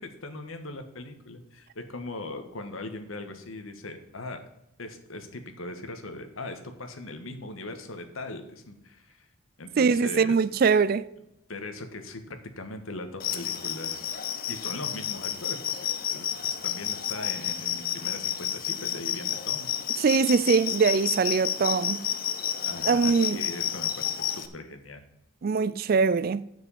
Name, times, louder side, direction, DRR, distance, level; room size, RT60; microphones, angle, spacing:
voice 1, 0.0-4.4 4.8-9.3 9.6-10.3 11.5-14.1 14.5-15.6 16.1-19.7 22.6-25.0, left 2 dB, 80° left, 1.4 m, -40 dB
voice 2, 9.8-11.1 20.0-22.0 22.9-23.4 25.4-26.4, right 5 dB, 45° right, 0.3 m, -22 dB
sound 1, 13.2-24.5, left 10 dB, 45° left, 0.8 m, -31 dB
7.6 x 6.3 x 7.1 m
head